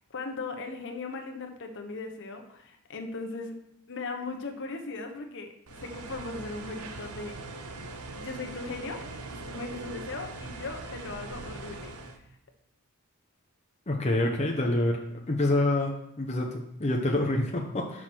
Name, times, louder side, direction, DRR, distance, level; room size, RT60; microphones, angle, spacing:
voice 1, 0.1-3.5 3.9-7.4 8.1-9.0 9.3-11.9, left 3 dB, 55° left, 5 dB, 0.9 m, -38 dB
sound 1, 5.7-12.2, right 2 dB, 85° right, 0.8 m, -41 dB
voice 2, 13.9-15.0 15.3-18.0, left 1 dB, 30° left, 0 dB, 0.7 m, -27 dB
6.1 x 4.9 x 5.9 m, 0.76 s
head